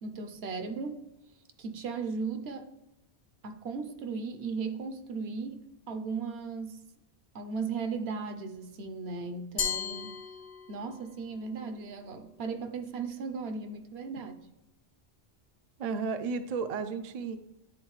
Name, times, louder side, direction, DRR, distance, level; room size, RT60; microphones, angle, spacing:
voice 1, 0.0-1.0 1.6-2.7 3.4-6.8 7.3-10.2 10.7-14.3, right 4 dB, 75° right, 0.9 m, -36 dB
Glass, 9.6-11.0, left 7 dB, 60° left, 0.9 m, -35 dB
voice 2, 15.8-17.4, right 5 dB, 55° right, 0.4 m, -33 dB
9.6 x 3.9 x 3.1 m
omnidirectional pair, 1.1 m